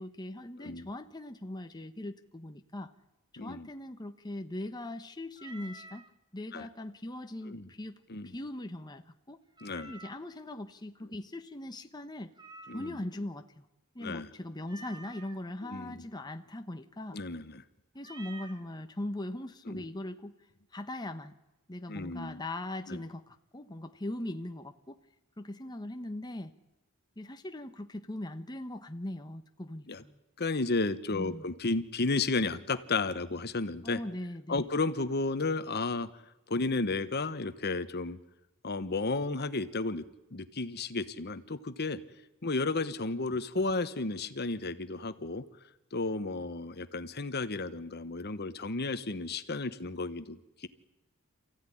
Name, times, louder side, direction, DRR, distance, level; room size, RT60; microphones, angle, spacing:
voice 1, 0.0-2.9 3.3-6.0 6.3-9.4 9.8-12.3 12.7-13.5 13.9-17.2 17.9-20.3 20.7-21.3 21.7-25.0 25.4-26.5 27.2-30.2 31.1-31.4 33.8-34.7, left 1 dB, 20° left, 6 dB, 1.0 m, -40 dB
voice 2, 0.6-0.9 3.4-3.7 6.5-6.7 7.5-7.7 8.1-8.3 9.6-9.9 12.7-13.0 14.0-14.3 15.6-16.0 17.1-17.6 19.7-19.9 21.9-22.4 22.9-23.0 29.9-30.0 30.4-34.0 34.5-36.1 36.5-38.2 38.6-40.1 40.3-42.0 42.4-45.4 45.9-50.7, left 3 dB, 50° left, 12 dB, 1.1 m, -33 dB
Meow, 5.4-6.1 9.6-10.3 12.4-13.2 14.6-15.4 18.0-18.6, right 2 dB, 20° right, 1.6 m, -49 dB
28.0 x 15.5 x 10.0 m, 0.98 s
head